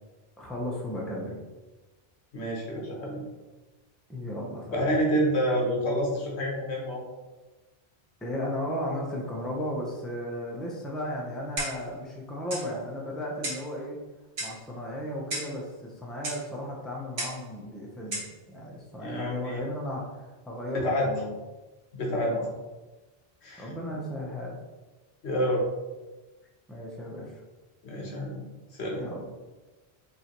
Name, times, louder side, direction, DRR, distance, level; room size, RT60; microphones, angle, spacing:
voice 1, 0.4-1.4 4.1-4.9 8.2-14.0 14.4-21.3 22.1-22.5 23.6-24.6 26.7-27.4 29.0-29.2, left 1 dB, ahead, -2 dB, 0.6 m, -35 dB
voice 2, 2.3-3.3 4.7-7.0 19.0-19.6 20.7-21.1 21.9-22.4 23.4-23.7 25.2-25.6 27.8-28.4 28.7-29.1, equal, 85° left, -1 dB, 1.3 m, -28 dB
Clock, 11.6-11.9 12.5-12.7 13.4-13.7 14.4-14.6 15.3-15.6 16.2-16.4 17.2-17.4 18.1-18.3, right 1 dB, 75° right, 1.4 m, -34 dB
5.4 x 2.7 x 3.0 m, 1.2 s
omnidirectional pair, 1.1 m